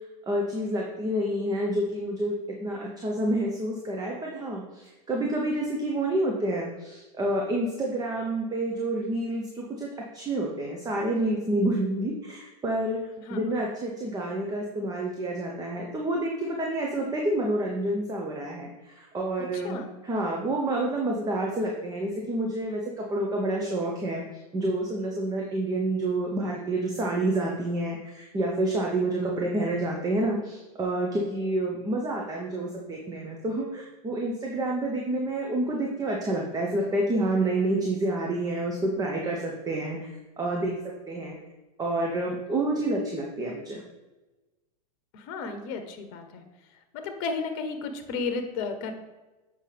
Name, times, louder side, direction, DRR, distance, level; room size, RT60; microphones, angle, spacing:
voice 1, 0.3-2.3 2.6-19.8 20.0-24.2 24.5-40.1 40.4-40.7 41.1-41.4 41.8-43.8, right 1 dB, 20° right, -1 dB, 1.0 m, -28 dB
voice 2, 19.5-19.9 45.1-46.5 46.9-48.9, left 4 dB, 50° left, 7 dB, 1.0 m, -33 dB
7.3 x 5.1 x 3.4 m, 1.1 s
hypercardioid pair, 105°, 20 cm